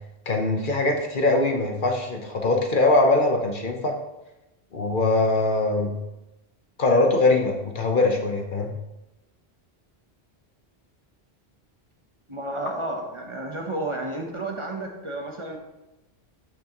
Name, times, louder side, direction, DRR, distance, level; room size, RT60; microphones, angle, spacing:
voice 1, 0.3-4.0 4.7-5.9 6.8-8.7, left 2 dB, 55° left, 3 dB, 1.1 m, -22 dB
voice 2, 12.3-15.6, right 2 dB, 30° right, 1 dB, 1.0 m, -31 dB
12.0 x 6.1 x 3.0 m, 0.98 s
omnidirectional pair, 1.1 m